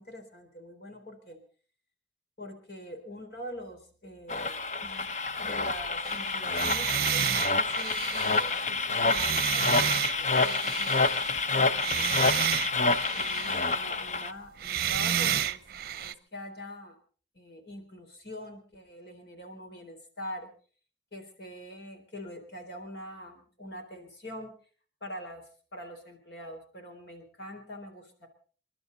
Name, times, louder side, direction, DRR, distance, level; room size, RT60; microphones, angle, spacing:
voice 1, 0.0-1.4 2.4-11.2 11.5-12.5 13.1-15.6 16.0-16.9 17.3-20.5 21.1-24.5 25.0-25.4 25.7-28.3, equal, 60° left, 5 dB, 4.0 m, -44 dB
sound 1, 4.3-14.3, left 3 dB, 40° left, 0.8 m, -28 dB
sound 2, 6.0-11.5 11.7-13.8 14.6-16.1, right 9 dB, 55° right, 0.7 m, -31 dB
29.0 x 11.5 x 4.0 m, 0.42 s
head